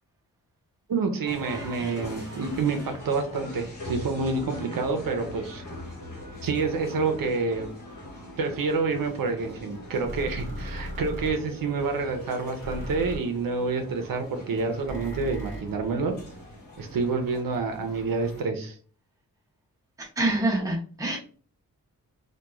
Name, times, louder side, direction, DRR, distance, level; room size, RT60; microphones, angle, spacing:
voice 1, 0.9-5.6 6.4-7.7 8.4-16.1 16.8-18.8, right 4 dB, 70° right, 5 dB, 0.6 m, -28 dB
sound 1, 1.2-18.4, left 1 dB, 55° left, 1.0 m, -41 dB
voice 2, 1.5-2.4 20.0-21.2, right 2 dB, 10° right, -1 dB, 0.6 m, -28 dB
sound 2, 10.0-11.3 12.6-13.2 14.9-15.6, equal, 35° left, 1.2 m, -36 dB
2.9 x 2.2 x 2.3 m, 0.43 s
wide cardioid pair, 165°, 36 cm